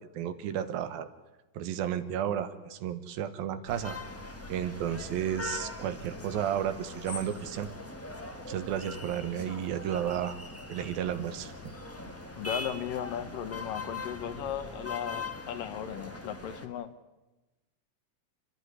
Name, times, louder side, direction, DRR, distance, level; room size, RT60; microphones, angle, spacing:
voice 1, 0.1-1.1 1.5-4.0 4.5-7.7 8.5-10.4 10.7-11.5, right 10 dB, 85° right, 10 dB, 3.0 m, -32 dB
sound 1, 3.7-16.7, left 2 dB, 15° left, 0.5 m, -41 dB
voice 2, 12.4-16.9, left 9 dB, 75° left, 10 dB, 2.7 m, -36 dB
30.0 x 11.5 x 9.8 m, 1.1 s
omnidirectional pair, 4.1 m